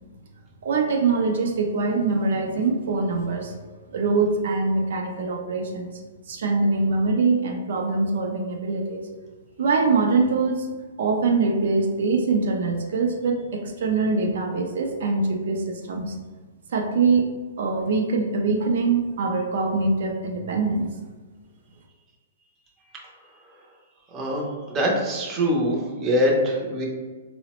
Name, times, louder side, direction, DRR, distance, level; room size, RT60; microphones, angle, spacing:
voice 1, 0.6-3.5 3.9-6.0 6.3-9.0 9.6-10.7 11.0-16.2 16.7-17.3 17.6-20.9, right 4 dB, 65° right, 2 dB, 0.4 m, -23 dB
voice 2, 24.1-26.9, equal, 20° right, -2 dB, 0.6 m, -23 dB
3.8 x 2.0 x 2.9 m, 1.4 s
hypercardioid pair, 160°, 0 cm